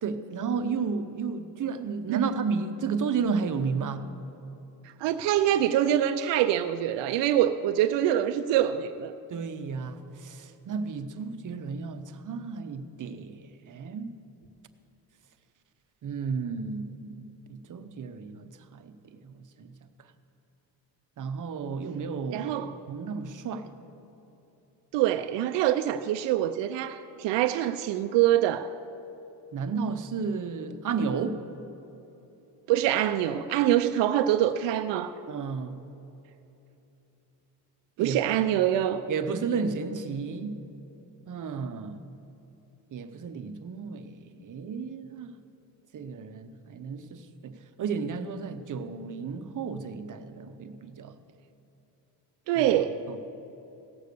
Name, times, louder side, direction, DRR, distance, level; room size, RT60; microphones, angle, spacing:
voice 1, 0.0-4.0 9.3-14.1 16.0-19.7 21.2-23.7 29.5-31.4 35.3-35.8 38.0-38.5 39.1-40.6 41.3-42.0 42.9-45.4 45.9-51.1 52.6-52.7 53.1-53.2, right 5 dB, 45° right, 10 dB, 0.8 m, -33 dB
voice 2, 5.0-9.1 22.3-22.7 24.9-28.7 32.7-35.1 38.0-39.0 52.5-53.0, right 12 dB, 85° right, 8 dB, 0.5 m, -25 dB
17.0 x 6.6 x 6.7 m, 3.0 s
cardioid pair, 95°, 42 cm